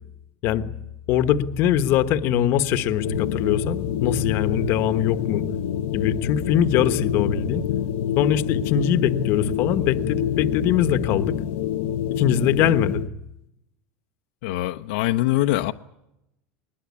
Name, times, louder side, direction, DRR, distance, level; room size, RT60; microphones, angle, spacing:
voice 1, 1.1-5.4 5.9-7.6 8.2-11.4 12.1-13.0, left 10 dB, 40° left, 11 dB, 1.2 m, -22 dB
sound 1, 2.8-13.1, left 10 dB, 90° left, 1.3 m, -27 dB
voice 2, 14.4-15.7, left 15 dB, 60° left, 5 dB, 0.9 m, -23 dB
21.0 x 20.5 x 9.6 m, 0.82 s
supercardioid pair, 175°, 6 cm